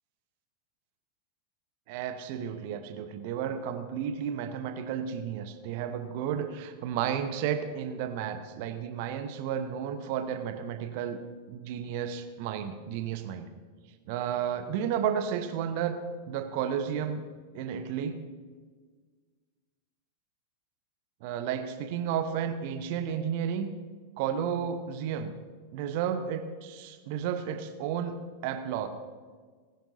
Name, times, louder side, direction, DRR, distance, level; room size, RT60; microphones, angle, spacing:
voice 1, 1.9-11.2 11.5-13.5 14.1-16.0 16.3-17.2 17.5-18.2 21.2-23.7 24.2-25.3 25.7-28.1 28.4-28.9, right 8 dB, 45° right, 8 dB, 1.0 m, -32 dB
20.0 x 10.5 x 2.7 m, 1.5 s
figure-of-eight pair, 90°, 0 cm